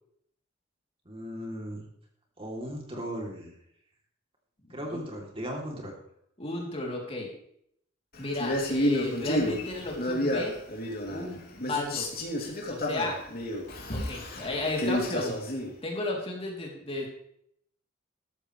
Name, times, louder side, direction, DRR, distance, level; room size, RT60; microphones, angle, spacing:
voice 1, 1.0-1.8 2.4-3.6 4.7-5.9, equal, 30° right, 0 dB, 3.2 m, -37 dB
voice 2, 4.7-5.0 6.4-7.3 8.2-10.5 11.1-12.1 12.7-13.2 13.9-15.4 15.8-17.1, left 2 dB, 30° left, -1 dB, 3.3 m, -33 dB
Male speech man speaking, 8.3-11.3 11.6-15.7, left 1 dB, 50° left, 3.1 m, -30 dB
14.0 x 13.0 x 3.3 m, 0.70 s
head